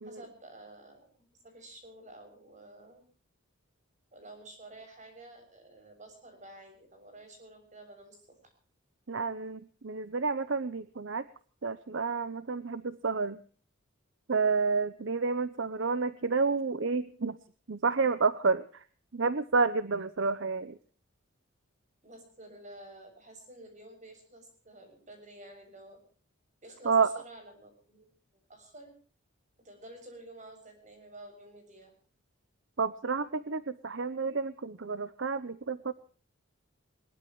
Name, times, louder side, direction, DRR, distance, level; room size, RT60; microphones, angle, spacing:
voice 1, 0.0-3.0 4.1-8.4 22.0-26.0 26.6-28.1 28.5-28.9 29.6-31.9, right 1 dB, 35° right, 5 dB, 6.8 m, -51 dB
voice 2, 9.1-11.2 11.6-13.4 14.3-17.4 17.7-18.8 19.1-20.8 26.8-27.1 32.8-35.9, right 4 dB, 60° right, 15 dB, 0.7 m, -30 dB
21.5 x 21.0 x 3.1 m, 0.41 s
head